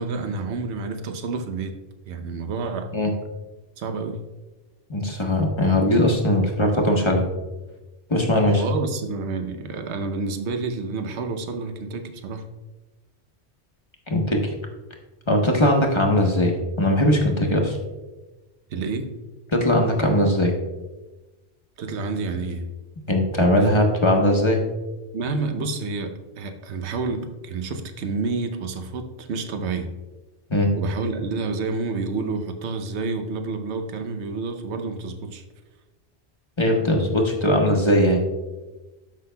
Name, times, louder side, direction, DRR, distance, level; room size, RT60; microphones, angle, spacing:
voice 1, 0.0-1.8 2.1-2.9 3.8-4.2 8.5-12.5 18.7-19.2 21.8-22.7 25.1-29.9 30.8-35.4, right 3 dB, 85° right, 7 dB, 1.0 m, -29 dB
voice 2, 4.9-7.2 8.1-8.6 14.1-14.5 15.3-17.8 19.5-20.5 23.1-24.6 30.5-30.7 36.6-38.2, left 1 dB, 25° left, 1 dB, 1.0 m, -20 dB
13.5 x 5.7 x 2.2 m, 1.1 s
omnidirectional pair, 1.1 m